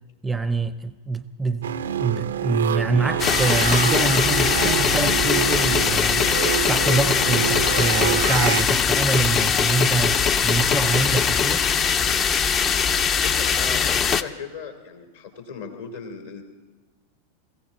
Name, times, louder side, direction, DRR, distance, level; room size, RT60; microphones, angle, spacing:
voice 1, 0.2-1.7 2.0-6.3 6.7-11.6, right 3 dB, 10° right, 0.6 m, -25 dB
sound 1, 1.6-8.6, right 9 dB, 65° right, 0.5 m, -26 dB
sound 2, 3.2-14.2, left 7 dB, 30° left, 0.6 m, -21 dB
voice 2, 13.2-16.4, left 6 dB, 60° left, 2.8 m, -37 dB
22.5 x 16.0 x 4.1 m
figure-of-eight pair, 90°, 0 cm